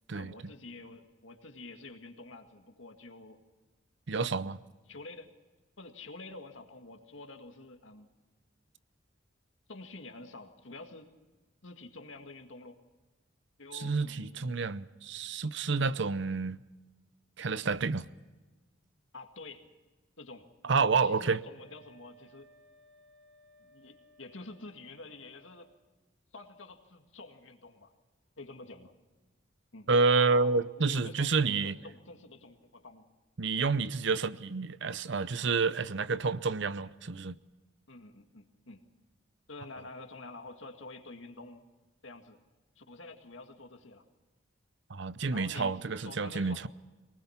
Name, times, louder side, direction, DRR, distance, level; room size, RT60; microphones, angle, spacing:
voice 1, 0.1-3.4 4.3-4.5 4.9-5.3 5.8-8.1 9.7-11.1 11.6-12.8 13.6-14.7 15.8-15.9 19.1-19.7 20.2-20.5 20.8-22.5 23.6-25.7 26.3-27.9 28.4-28.9 29.7-29.9 30.3-33.0 37.9-38.8 39.5-41.6 42.0-42.4 42.8-44.0 45.3-45.8 46.0-46.6, left 3 dB, 80° left, 2.1 m, -48 dB
voice 2, 4.1-4.6 13.7-16.6 17.4-18.1 20.6-21.4 29.9-31.8 33.4-37.4 44.9-46.7, right 4 dB, 65° right, 0.7 m, -29 dB
Wind instrument woodwind instrument, 21.5-25.8, right 1 dB, 90° right, 5.4 m, -61 dB
23.0 x 19.5 x 5.8 m
head